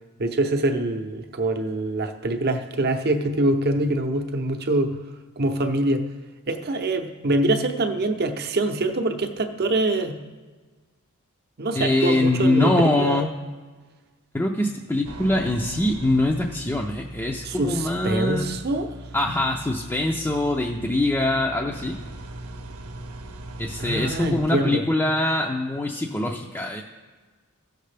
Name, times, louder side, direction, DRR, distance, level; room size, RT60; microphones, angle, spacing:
voice 1, 0.2-5.0 5.4-6.0 6.5-10.2 11.6-13.3 17.4-18.9 23.8-24.8, right 2 dB, 45° right, 5 dB, 0.7 m, -24 dB
voice 2, 11.7-13.3 14.3-18.5 19.1-22.0 23.6-26.8, left 1 dB, 10° left, -1 dB, 0.5 m, -23 dB
sound 1, 15.0-24.5, right 1 dB, 85° right, 0.8 m, -39 dB
15.5 x 6.6 x 3.3 m, 1.4 s
head